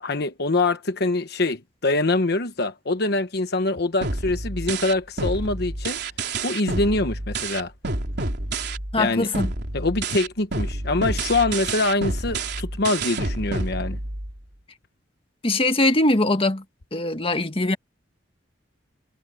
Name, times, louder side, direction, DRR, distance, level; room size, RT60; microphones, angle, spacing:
voice 1, 0.0-6.0 6.4-7.7 9.0-9.3 9.7-14.0, left 2 dB, 60° left, 1.2 m, -24 dB
sound 1, 4.0-9.0 9.3-14.4, right 2 dB, 65° right, 4.0 m, -29 dB
voice 2, 8.9-9.5 15.4-16.6 16.9-17.8, left 2 dB, 30° left, 1.8 m, -21 dB
head